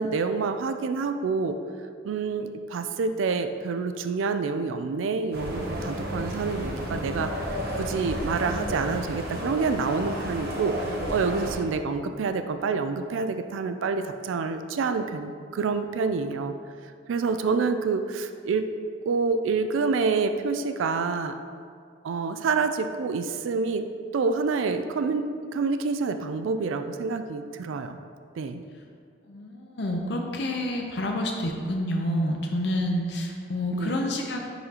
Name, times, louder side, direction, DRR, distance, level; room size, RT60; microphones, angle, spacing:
voice 1, 0.0-1.6 2.0-16.5 17.1-18.7 19.1-21.4 22.0-23.8 24.1-28.0 28.4-28.6 33.7-33.9, right 4 dB, 90° right, 8 dB, 0.4 m, -27 dB
sound 1, 5.3-11.6, equal, 50° right, 0.9 m, -32 dB
voice 2, 29.3-34.4, left 1 dB, 60° left, 1 dB, 0.6 m, -28 dB
10.0 x 4.1 x 2.9 m, 2.2 s
head